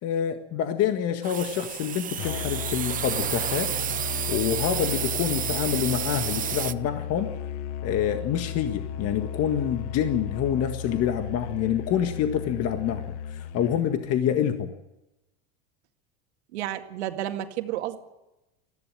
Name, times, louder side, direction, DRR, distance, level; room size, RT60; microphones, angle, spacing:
voice 1, 0.0-3.7 4.3-7.3 7.8-14.7, left 9 dB, 45° left, 6 dB, 1.8 m, -27 dB
sound 1, 1.2-6.7, right 9 dB, 25° right, 0.7 m, -30 dB
Musical instrument, 2.2-13.9, left 8 dB, 70° left, 1.3 m, -35 dB
voice 2, 16.5-18.0, right 12 dB, 85° right, 6 dB, 2.1 m, -31 dB
20.0 x 15.0 x 9.0 m, 0.97 s
supercardioid pair, 115°, 33 cm